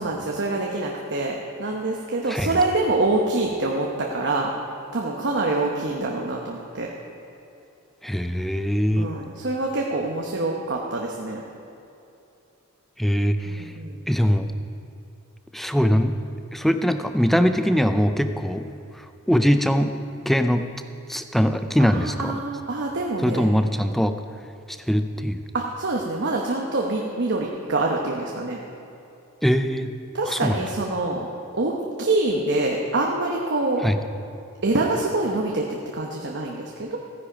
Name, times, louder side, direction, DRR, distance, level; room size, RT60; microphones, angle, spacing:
voice 1, 0.0-4.5 4.9-6.9 9.0-11.4 13.4-14.0 21.8-23.5 25.5-28.6 30.1-31.3 31.5-33.9 34.6-37.0, right 2 dB, 55° right, 0 dB, 1.0 m, -25 dB
voice 2, 8.0-9.1 13.0-13.7 14.1-14.5 15.5-16.2 16.5-18.7 18.9-20.0 20.3-20.7 21.1-22.4 23.2-24.2 24.7-25.4 29.4-29.9 30.3-30.6 33.8-34.0, equal, ahead, 8 dB, 0.4 m, -22 dB
15.0 x 10.0 x 5.1 m, 2.7 s
head